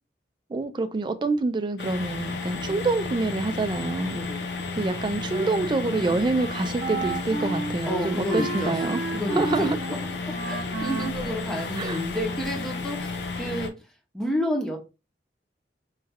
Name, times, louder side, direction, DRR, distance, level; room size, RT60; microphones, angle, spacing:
voice 1, 0.5-4.2 4.7-9.0 9.3-9.8 11.8-12.0, right 3 dB, 25° right, 0.3 m, -26 dB
sound 1, 1.8-13.7, left 4 dB, 65° left, 0.6 m, -32 dB
voice 2, 4.1-4.4 7.9-8.7 9.1-9.7 10.2-13.7 14.1-14.8, equal, 5° left, 0.7 m, -30 dB
Wind instrument woodwind instrument, 4.8-12.3, right 2 dB, 75° right, 0.7 m, -34 dB
3.1 x 2.3 x 3.4 m
head